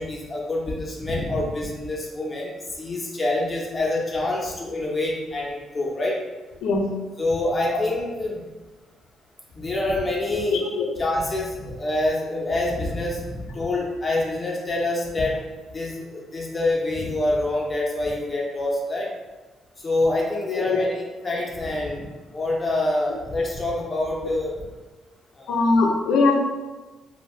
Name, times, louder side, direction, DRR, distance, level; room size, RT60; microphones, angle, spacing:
voice 1, 0.0-2.5 2.8-6.2 7.2-8.4 9.6-10.6 11.0-15.4 15.7-19.1 19.8-22.1 22.3-24.5 25.4-25.6, left 2 dB, 30° left, -3 dB, 0.7 m, -26 dB
voice 2, 7.7-8.1 10.5-10.9 20.5-20.8 25.5-26.3, left 3 dB, 90° left, 0 dB, 0.5 m, -22 dB
2.6 x 2.2 x 3.1 m, 1.2 s
cardioid pair, 90°, 0 cm